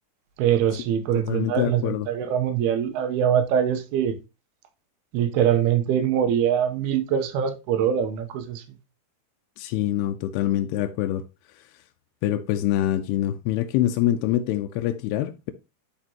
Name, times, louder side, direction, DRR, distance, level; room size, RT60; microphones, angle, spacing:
voice 1, 0.4-4.2 5.1-8.6, right 9 dB, 85° right, 2.8 m, -23 dB
voice 2, 1.2-2.1 9.6-11.2 12.2-15.5, left 12 dB, 90° left, 2.6 m, -25 dB
11.5 x 4.5 x 2.8 m
omnidirectional pair, 4.5 m